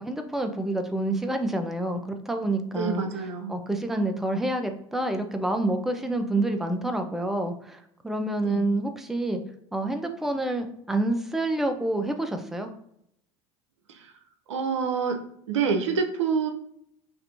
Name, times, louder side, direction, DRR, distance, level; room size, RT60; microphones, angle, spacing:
voice 1, 0.0-2.0 2.3-3.0 3.5-9.4 9.7-12.7, right 1 dB, ahead, 5 dB, 0.4 m, -28 dB
voice 2, 2.7-3.5 8.4-8.7 14.5-15.2 15.5-16.5, right 6 dB, 85° right, 5 dB, 0.5 m, -27 dB
3.2 x 2.5 x 2.8 m, 0.72 s
hypercardioid pair, 80°, 15 cm